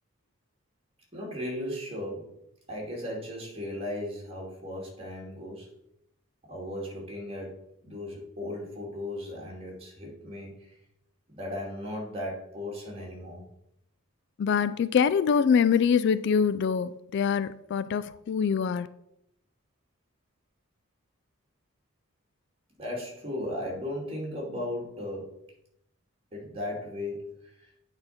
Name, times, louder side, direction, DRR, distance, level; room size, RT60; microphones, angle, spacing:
voice 1, 1.1-2.3 2.7-5.7 6.5-7.6 7.8-10.8 11.3-13.4 22.8-25.4 26.3-27.7, left 1 dB, 30° right, 2.6 m, -36 dB
voice 2, 14.4-18.9, left 6 dB, 55° left, 0.3 m, -24 dB
8.8 x 4.0 x 5.8 m
head